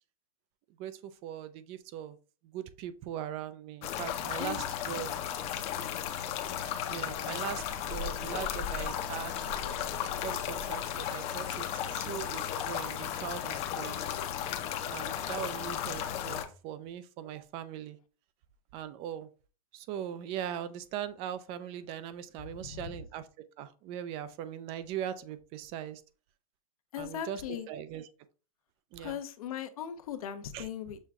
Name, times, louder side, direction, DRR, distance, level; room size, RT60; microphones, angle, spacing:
voice 1, 0.8-2.2 2.5-5.1 6.9-9.5 10.2-14.1 14.9-18.0 18.7-19.3 19.7-23.3 23.6-26.0 27.0-28.1 28.9-29.2 30.5-30.7, right 10 dB, 30° right, 0.3 m, -40 dB
sound 1, 3.8-16.4, left 9 dB, 35° left, 0.6 m, -35 dB
voice 2, 22.5-22.9 26.9-27.7 29.0-31.1, left 9 dB, 75° left, 0.7 m, -39 dB
6.3 x 2.2 x 3.5 m
hypercardioid pair, 135°, 18 cm